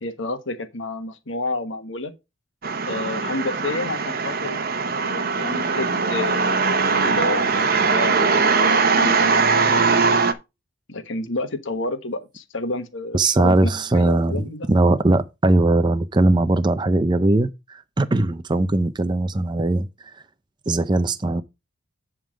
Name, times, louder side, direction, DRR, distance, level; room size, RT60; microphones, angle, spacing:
voice 1, 0.0-2.1 2.9-4.6 5.0-6.6 7.0-8.7 9.0-10.2 10.9-14.7, left 2 dB, 70° left, 1.3 m, -30 dB
sound 1, 2.6-10.3, right 4 dB, 50° right, 0.9 m, -20 dB
voice 2, 13.1-19.9 20.7-21.4, right 2 dB, 20° right, 0.4 m, -20 dB
10.5 x 3.7 x 5.0 m
head